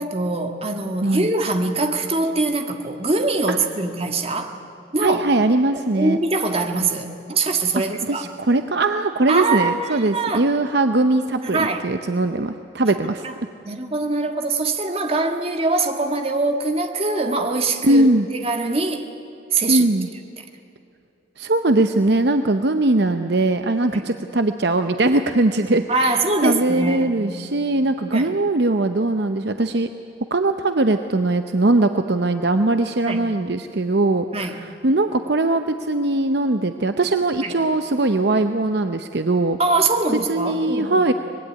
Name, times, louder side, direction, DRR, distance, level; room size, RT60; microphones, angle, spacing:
voice 1, 0.0-4.6 4.9-5.2 6.0-8.2 9.3-10.5 11.5-11.8 13.2-13.3 13.7-19.1 19.5-19.9 23.9-24.1 25.9-27.2 28.1-28.4 33.0-33.3 34.3-34.6 37.4-37.5 39.6-41.0, right 3 dB, 30° right, 5 dB, 1.6 m, -23 dB
voice 2, 5.0-6.2 8.0-13.3 17.8-18.3 19.7-20.1 21.4-29.9 30.3-39.6 40.3-41.1, right 2 dB, 55° right, 8 dB, 0.7 m, -20 dB
24.5 x 20.0 x 9.7 m, 2.7 s
head